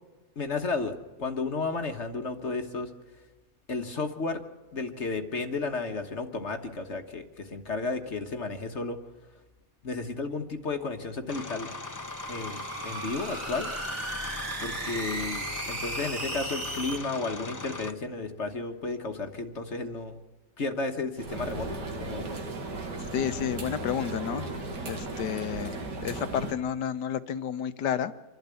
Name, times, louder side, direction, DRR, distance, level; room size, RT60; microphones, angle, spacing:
voice 1, 0.4-2.9 3.7-4.4 4.7-9.0 9.8-11.7 12.3-13.7 14.6-20.2 20.6-22.2, left 3 dB, 45° left, 5 dB, 1.5 m, -33 dB
sound 1, 11.3-17.9, left 3 dB, 25° left, 0.4 m, -39 dB
sound 2, 11.6-17.0, right 2 dB, 35° right, 2.4 m, -36 dB
sound 3, 21.2-26.5, right 2 dB, 90° right, 2.6 m, -36 dB
voice 2, 23.1-24.5 24.8-25.8 26.0-28.1, left 9 dB, 85° left, 12 dB, 1.5 m, -30 dB
26.5 x 12.0 x 8.3 m, 1.2 s
omnidirectional pair, 1.8 m